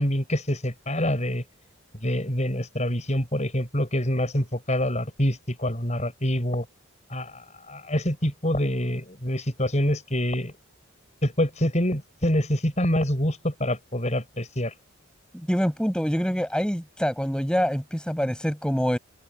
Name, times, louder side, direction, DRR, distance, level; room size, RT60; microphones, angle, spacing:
voice 1, 0.0-1.4 2.0-6.7 7.1-10.5 11.2-14.7, left 1 dB, 35° left, 7.0 m, -26 dB
voice 2, 15.3-19.0, equal, 5° left, 7.2 m, -25 dB
open air
head